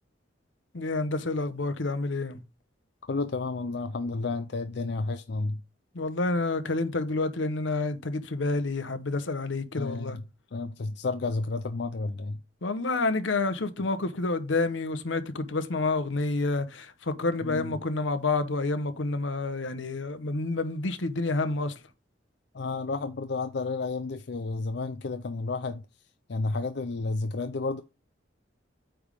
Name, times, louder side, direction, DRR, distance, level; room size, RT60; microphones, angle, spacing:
voice 1, 0.7-2.4 5.9-10.2 12.6-21.7, left 3 dB, 85° left, 1.0 m, -29 dB
voice 2, 3.1-5.6 9.8-10.2 10.5-12.4 17.4-17.8 22.5-25.8 26.3-27.8, left 3 dB, 60° left, 0.5 m, -31 dB
8.9 x 3.5 x 5.0 m
head